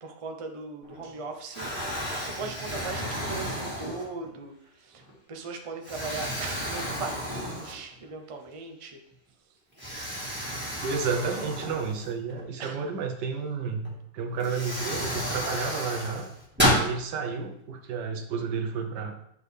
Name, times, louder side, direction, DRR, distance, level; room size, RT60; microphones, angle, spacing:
voice 1, 0.0-9.0 11.4-11.5 12.6-12.8, right 4 dB, 40° right, 4 dB, 0.4 m, -39 dB
Explosion, 0.8-1.2 1.5-4.4 5.0-5.1 5.8-8.1 8.4-8.5 9.8-12.4 13.8-13.9 14.4-16.9, equal, 5° right, 1.7 m, -31 dB
voice 2, 10.8-16.3 16.7-19.2, right 5 dB, 85° right, 5 dB, 1.5 m, -31 dB
8.3 x 5.5 x 3.4 m, 0.74 s
omnidirectional pair, 1.8 m